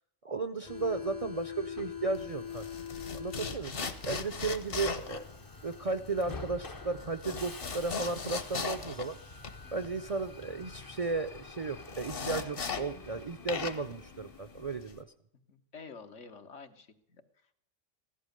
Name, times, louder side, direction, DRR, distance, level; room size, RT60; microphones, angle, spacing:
voice 1, 0.2-2.7 3.1-5.2 5.6-9.2 9.7-15.1, right 3 dB, 45° right, 11 dB, 0.5 m, -35 dB
Subway metro underground, 0.6-15.0, left 6 dB, 25° left, 0.5 m, -46 dB
sound 1, 2.1-13.2 13.5-15.0, left 5 dB, 50° left, 1.3 m, -39 dB
voice 2, 15.5-17.2, left 5 dB, 75° left, 7 dB, 1.6 m, -49 dB
15.5 x 11.5 x 6.6 m, 0.74 s
omnidirectional pair, 1.2 m